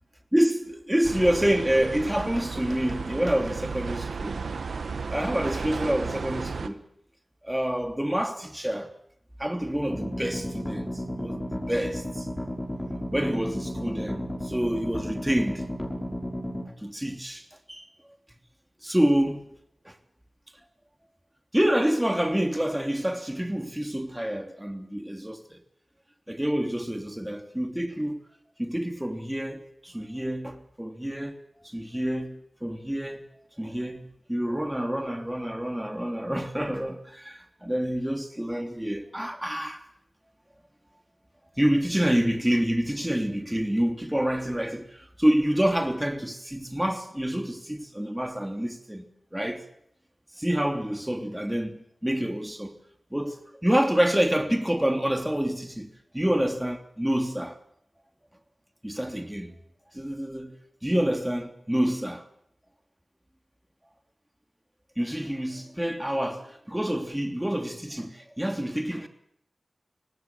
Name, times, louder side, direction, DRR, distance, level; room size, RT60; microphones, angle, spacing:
voice 1, 0.3-4.4 5.1-6.8 7.4-8.9 9.4-10.9 11.2-12.3 13.1-15.6 16.8-17.4 17.7-17.9 18.8-19.5 19.8-19.9 21.5-25.6 26.3-28.2 28.6-31.4 31.6-33.3 33.6-39.8 41.6-49.1 49.3-49.6 50.4-52.7 53.1-55.9 56.1-57.6 58.8-59.5 59.9-60.5 60.8-62.2 65.0-69.1, equal, 10° right, 3.1 m, -27 dB
sound 1, 1.0-6.7, right 4 dB, 90° right, 1.3 m, -34 dB
sound 2, 9.9-16.7, equal, 20° left, 6.2 m, -33 dB
25.0 x 18.5 x 7.5 m
cardioid pair, 50°, 0 cm